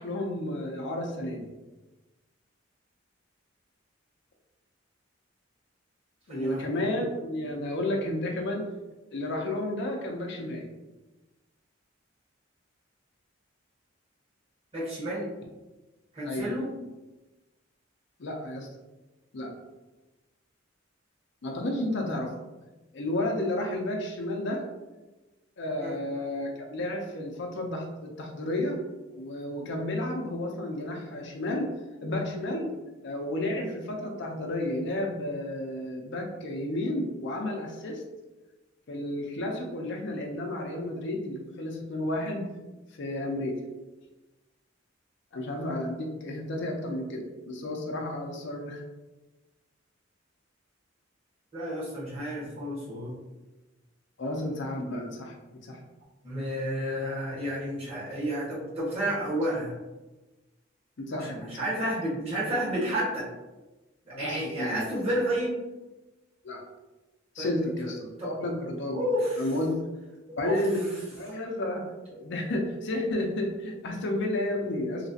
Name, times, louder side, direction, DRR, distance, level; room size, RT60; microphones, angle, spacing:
voice 1, 0.0-1.4 6.3-8.7 9.1-10.7 16.2-16.5 18.2-18.7 19.3-19.5 21.4-22.3 22.9-24.6 25.6-28.8 29.1-31.7 32.0-32.7 33.0-38.0 38.9-42.5 43.0-43.6 45.3-48.8 54.2-55.3 55.6-55.8 61.0-61.5 64.1-64.8 66.4-66.6 67.3-69.1 69.4-69.7 70.4-70.8 71.1-75.1, left 1 dB, 65° left, 1 dB, 0.5 m, -32 dB
voice 2, 6.3-6.6 14.7-15.3 16.1-16.7 25.8-26.0 51.5-53.1 56.2-59.8 61.2-63.3 64.0-65.5 67.4-67.5 67.8-67.9 68.2-68.3 68.9-69.4 70.3-70.6, equal, 30° right, -7 dB, 1.4 m, -31 dB
3.2 x 2.9 x 2.7 m, 1.1 s
head